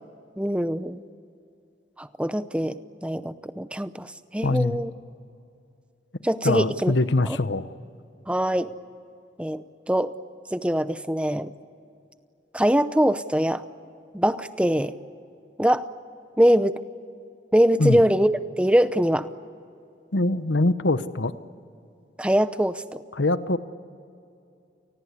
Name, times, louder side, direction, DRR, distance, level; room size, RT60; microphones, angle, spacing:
voice 1, 0.4-1.0 2.0-4.9 6.2-6.9 8.3-8.7 9.4-10.1 10.5-11.5 12.5-13.6 14.1-14.9 15.6-15.9 16.4-16.8 17.5-19.3 22.2-23.0, equal, 5° right, 12 dB, 0.7 m, -23 dB
voice 2, 4.4-4.8 6.4-7.7 17.8-18.0 20.1-21.3 23.2-23.6, left 2 dB, 80° left, 13 dB, 1.0 m, -23 dB
29.0 x 20.0 x 8.3 m, 2.6 s
head